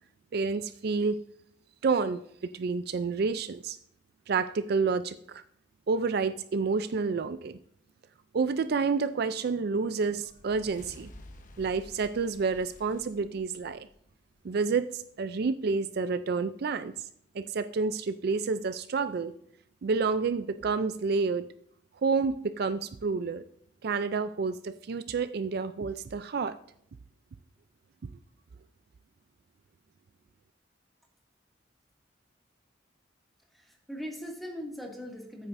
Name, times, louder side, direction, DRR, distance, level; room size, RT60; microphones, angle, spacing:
voice 1, 0.3-1.2 1.8-3.8 4.3-5.4 5.9-7.6 8.3-11.1 11.6-13.9 14.4-16.9 17.3-19.3 19.8-21.5 22.0-23.4 23.8-26.6, right 4 dB, 55° right, 13 dB, 0.4 m, -29 dB
sound 1, 10.0-14.6, left 1 dB, 45° left, 1.0 m, -52 dB
voice 2, 33.5-35.5, equal, ahead, 0 dB, 2.1 m, -40 dB
14.0 x 8.6 x 2.6 m, 0.69 s
head